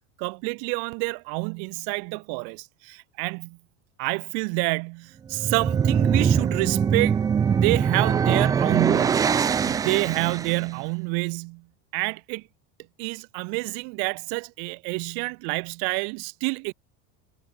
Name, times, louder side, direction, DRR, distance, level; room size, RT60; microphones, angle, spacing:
voice 1, 0.2-3.6 4.0-7.2 7.5-9.3 9.6-11.6 11.9-12.4 13.0-16.7, right 40 dB or more, 60° right, 3.0 m, -28 dB
sound 1, 5.3-10.7, right 7 dB, 10° right, 0.3 m, -22 dB
cardioid pair, 160°, 34 cm